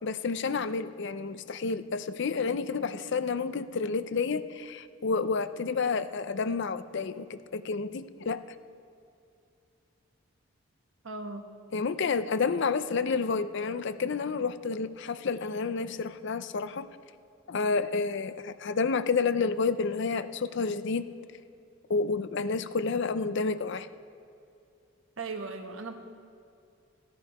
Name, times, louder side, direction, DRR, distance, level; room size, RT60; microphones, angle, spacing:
voice 1, 0.0-8.4 11.7-16.9 17.5-21.1 21.9-23.9, left 4 dB, 55° left, 13 dB, 0.4 m, -30 dB
voice 2, 11.0-11.4 25.2-25.9, right 3 dB, 65° right, 6 dB, 1.0 m, -37 dB
14.5 x 10.0 x 4.9 m, 2.5 s
head